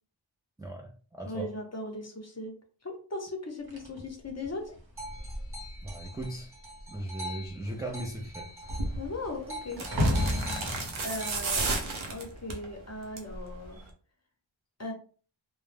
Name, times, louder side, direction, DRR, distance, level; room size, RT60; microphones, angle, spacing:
voice 1, 0.6-1.5 5.8-6.5 6.9-8.5, right 1 dB, 10° right, 1 dB, 0.3 m, -38 dB
voice 2, 1.2-2.5 2.8-4.7 9.0-9.8 10.1-10.4 11.0-13.8 14.8-14.9, left 2 dB, 35° left, 2 dB, 0.7 m, -38 dB
sound 1, 3.7-6.4 6.7-7.1 7.4-12.7 13.5-13.7, equal, 50° right, 0.9 m, -34 dB
sound 2, 5.0-8.9 9.2-11.3, equal, 25° right, 1.2 m, -44 dB
sound 3, 8.7-8.9 9.7-12.6 13.0-13.4 13.6-13.7, right 3 dB, 90° right, 0.7 m, -32 dB
2.1 x 2.0 x 3.2 m, 0.41 s
wide cardioid pair, 50°, 47 cm